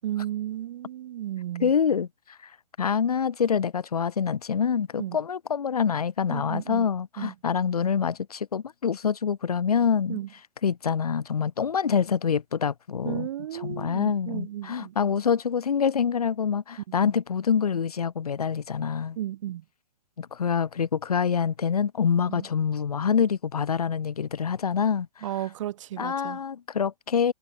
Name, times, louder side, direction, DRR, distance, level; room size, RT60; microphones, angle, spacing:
voice 1, 0.0-1.7 5.0-5.2 6.3-6.9 7.2-7.3 10.1-10.3 13.0-14.9 16.9-17.0 19.2-19.6 22.3-22.5 25.2-26.4, right 12 dB, 50° right, 4.0 m, -34 dB
voice 2, 1.6-2.1 2.8-10.2 10.6-13.3 13.6-19.2 20.2-25.1 26.0-27.3, left 7 dB, 70° left, 5.7 m, -26 dB
figure-of-eight pair, 120°, 20 cm